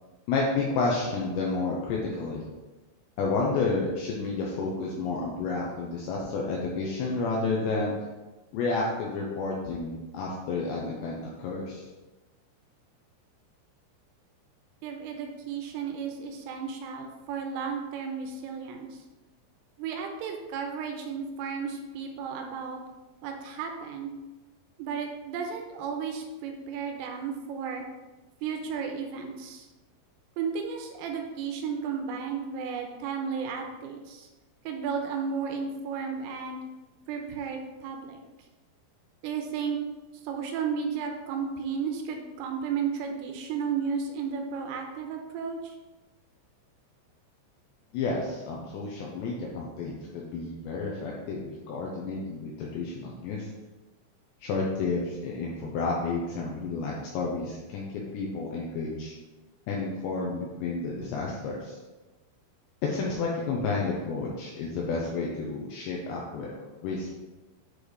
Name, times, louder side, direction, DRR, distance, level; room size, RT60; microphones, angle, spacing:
voice 1, 0.3-2.4 3.2-7.9 8.5-11.9 47.9-53.5 54.4-57.8 58.1-59.1 59.7-61.8 62.8-66.5 66.8-67.1, left 3 dB, 80° left, -3 dB, 2.6 m, -30 dB
voice 2, 14.8-19.0 19.8-22.8 23.2-24.1 24.8-27.9 28.4-29.7 30.4-34.3 34.7-36.6 37.1-38.2 39.2-39.8 40.2-45.8, right 6 dB, 85° right, 3 dB, 3.3 m, -33 dB
8.6 x 4.9 x 3.2 m, 1.2 s
omnidirectional pair, 5.8 m